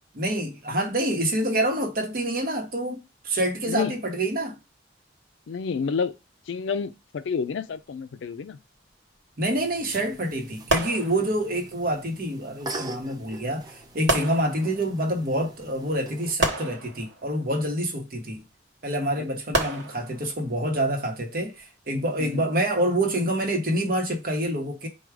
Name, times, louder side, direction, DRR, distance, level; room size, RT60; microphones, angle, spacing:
voice 1, 0.1-4.6 9.4-18.4 18.8-24.9, right 1 dB, 50° right, 1.0 m, -27 dB
voice 2, 3.7-4.0 5.5-6.2 6.5-8.6 22.2-22.5, left 5 dB, 80° left, 0.4 m, -29 dB
sound 1, 9.5-16.3, right 2 dB, 20° right, 0.4 m, -43 dB
sound 2, 10.7-11.7 13.0-13.1 14.1-15.1 16.4-17.7 19.5-20.6 21.3-21.6, right 1 dB, 75° right, 1.0 m, -29 dB
4.7 x 2.3 x 4.7 m
head